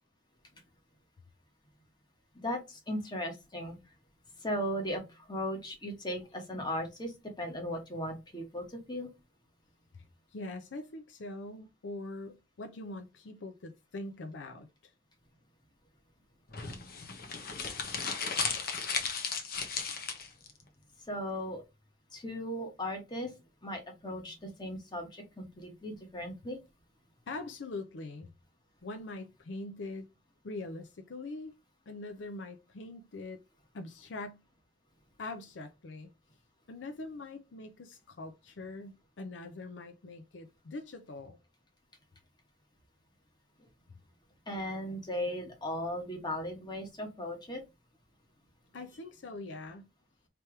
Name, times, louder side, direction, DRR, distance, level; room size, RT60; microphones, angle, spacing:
voice 1, 2.3-3.8 4.4-9.1 21.1-21.6 22.1-23.3 23.6-26.6 43.6-43.7 44.5-47.6, equal, 25° left, 1.3 m, -37 dB
voice 2, 10.3-14.9 27.3-28.3 28.8-30.1 30.4-31.5 31.9-33.4 33.7-34.4 35.2-36.1 36.7-41.4 48.7-49.8, left 2 dB, 75° left, 0.5 m, -43 dB
sound 1, 16.5-20.5, left 5 dB, 55° left, 0.9 m, -35 dB
3.4 x 3.0 x 4.5 m
head